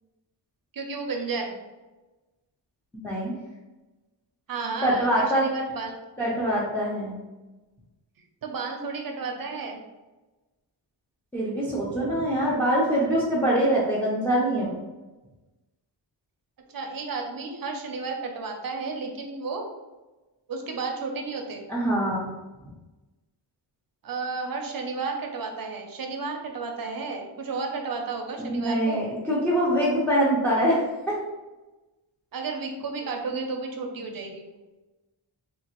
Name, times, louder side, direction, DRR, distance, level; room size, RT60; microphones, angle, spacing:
voice 1, 0.7-1.6 4.5-6.0 8.4-9.8 16.7-19.6 20.5-21.6 24.0-29.0 32.3-34.5, right 4 dB, 50° right, 2 dB, 0.6 m, -32 dB
voice 2, 2.9-3.3 4.8-5.4 6.2-7.2 11.3-14.8 21.7-22.3 28.5-31.2, right 1 dB, 5° left, -7 dB, 0.5 m, -24 dB
3.8 x 2.4 x 2.9 m, 1.1 s
wide cardioid pair, 155°, 45 cm